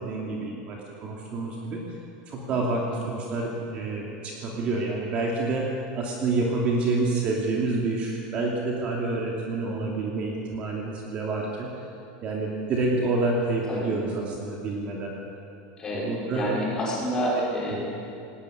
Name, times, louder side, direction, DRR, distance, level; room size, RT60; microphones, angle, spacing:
voice 1, 0.0-1.8 2.3-5.7 5.9-11.7 12.2-15.1 15.9-16.5, right 3 dB, 30° right, -1 dB, 2.6 m, -28 dB
voice 2, 15.8-16.1 16.3-17.8, equal, 15° left, -4 dB, 5.3 m, -29 dB
19.0 x 19.0 x 8.1 m, 2.5 s
supercardioid pair, 175°, 4 cm